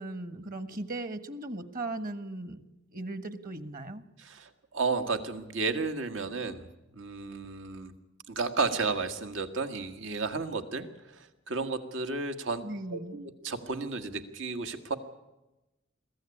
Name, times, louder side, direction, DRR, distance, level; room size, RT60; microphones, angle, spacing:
voice 1, 0.0-2.6 2.9-4.0 12.6-13.2, right 2 dB, 50° right, 12 dB, 1.4 m, -38 dB
voice 2, 4.2-6.7 6.9-7.9 8.3-12.6 12.9-15.0, right 4 dB, 85° right, 7 dB, 1.7 m, -33 dB
22.5 x 15.0 x 9.9 m, 1.0 s
head